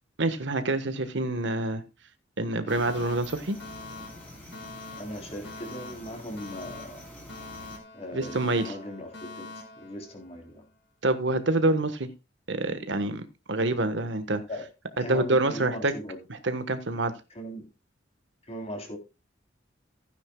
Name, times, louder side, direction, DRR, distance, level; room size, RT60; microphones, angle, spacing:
voice 1, 0.2-1.8 2.4-3.6 8.1-8.7 11.0-12.1 12.5-14.4 15.0-15.9 16.3-17.1, right 2 dB, 70° right, 10 dB, 1.3 m, -27 dB
Alarm, 2.7-10.7, left 2 dB, 70° left, 4.8 m, -44 dB
sound 1, 2.7-7.8, left 1 dB, 10° left, 3.9 m, -47 dB
voice 2, 5.0-7.1 7.9-9.5 9.8-10.6 14.5-14.7 15.0-16.2 17.4-17.7 18.5-19.0, equal, 35° left, 3 dB, 3.5 m, -38 dB
15.5 x 9.8 x 2.3 m, 0.27 s
head